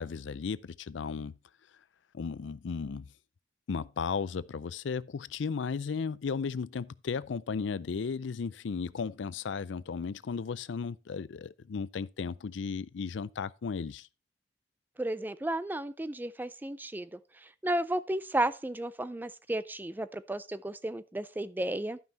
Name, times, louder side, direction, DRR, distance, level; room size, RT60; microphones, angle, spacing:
voice 1, 0.0-1.3 2.1-3.1 3.7-14.1, left 5 dB, 80° left, 0.4 m, -35 dB
voice 2, 15.0-22.0, right 1 dB, 10° right, 0.4 m, -33 dB
12.0 x 5.6 x 4.1 m
head